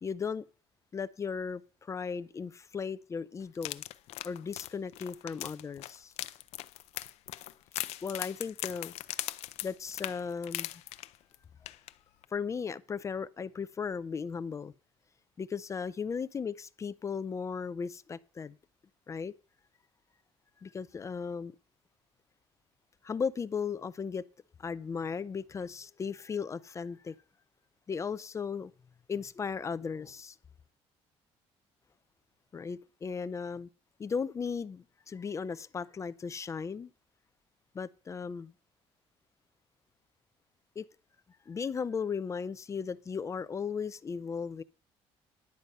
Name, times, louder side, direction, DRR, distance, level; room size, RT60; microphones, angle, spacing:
voice 1, 0.0-0.4 0.9-3.8 4.2-6.1 8.0-8.9 9.6-10.8 12.3-14.7 15.4-18.6 19.1-19.3 20.6-21.5 23.0-24.2 24.6-27.1 27.9-28.7 29.1-30.4 32.5-33.7 34.0-36.9 37.7-38.5 40.8-40.9 41.5-44.6, left 6 dB, 25° left, 0.4 m, -36 dB
sound 1, 3.5-11.3 11.7-11.9 12.2-12.3, left 15 dB, 80° left, 0.6 m, -39 dB
10.5 x 7.8 x 5.4 m
cardioid pair, 120°, 11 cm